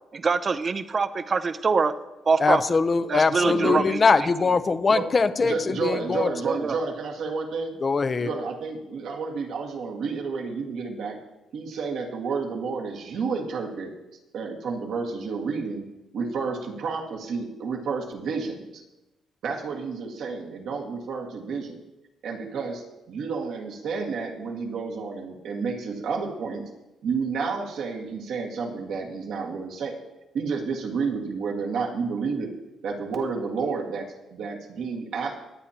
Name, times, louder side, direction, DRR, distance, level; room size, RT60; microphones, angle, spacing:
voice 1, 0.1-1.9 2.3-2.6 3.1-4.0 6.4-6.7, right 4 dB, 40° right, 12 dB, 0.6 m, -24 dB
voice 2, 2.4-6.3 7.8-8.3, left 4 dB, 35° left, 11 dB, 0.6 m, -22 dB
voice 3, 3.4-3.9 4.9-5.1 5.4-7.7 8.2-11.2 11.5-14.0 14.3-15.9 16.1-18.8 19.4-21.8 22.2-26.7 27.0-30.0 30.3-32.5 32.8-35.3, right 5 dB, 75° right, 1 dB, 1.8 m, -30 dB
20.0 x 8.6 x 2.9 m, 1.0 s
cardioid pair, 90°, 0 cm